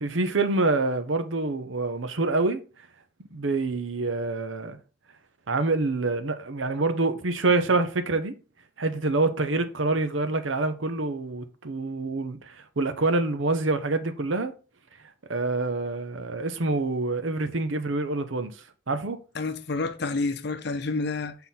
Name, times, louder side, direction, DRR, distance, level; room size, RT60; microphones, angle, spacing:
voice 1, 0.0-2.6 3.3-4.8 5.5-8.4 8.8-14.5 15.3-18.5 18.9-19.2, right 3 dB, 70° right, 0.8 m, -26 dB
voice 2, 19.3-21.4, left 3 dB, 55° left, 0.7 m, -29 dB
7.5 x 3.9 x 4.2 m
head